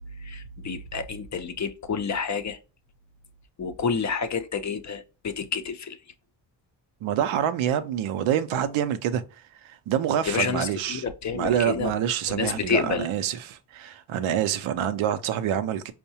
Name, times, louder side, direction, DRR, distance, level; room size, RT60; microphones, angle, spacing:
voice 1, 0.2-2.6 3.6-6.0 10.3-11.9 12.3-13.1, left 5 dB, 40° left, 0.5 m, -29 dB
voice 2, 7.0-9.2 9.6-11.0 11.3-15.9, right 9 dB, 85° right, 0.6 m, -26 dB
4.5 x 2.1 x 2.7 m
cardioid pair, 60°, 47 cm